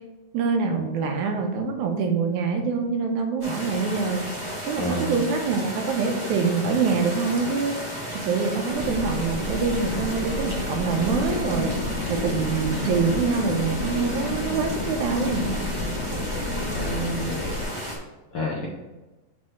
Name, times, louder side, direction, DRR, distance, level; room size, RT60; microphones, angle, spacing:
voice 1, 0.3-4.3 4.7-7.8 8.1-11.8 12.1-15.5, right 5 dB, 75° right, 3 dB, 2.1 m, -25 dB
sound 1, 3.4-18.0, equal, 10° right, 1.2 m, -34 dB
voice 2, 4.8-5.2 16.7-17.4 18.3-18.7, equal, 75° left, -4 dB, 1.2 m, -29 dB
sound 2, 8.7-17.6, left 2 dB, 45° left, 1.5 m, -30 dB
6.4 x 3.3 x 5.9 m, 1.1 s
omnidirectional pair, 3.8 m